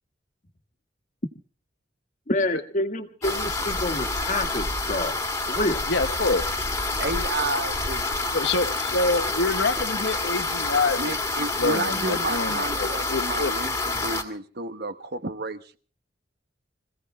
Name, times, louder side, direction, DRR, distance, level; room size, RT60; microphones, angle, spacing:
voice 1, 2.3-5.2 5.5-5.8, left 1 dB, 40° left, 1.7 m, -27 dB
sound 1, 3.2-14.2, left 2 dB, 15° left, 2.1 m, -28 dB
voice 2, 5.9-6.5 8.3-13.6, left 3 dB, 70° left, 1.3 m, -26 dB
voice 3, 7.0-8.2 11.0-15.8, right 2 dB, 60° right, 1.2 m, -31 dB
26.5 x 16.0 x 3.3 m
head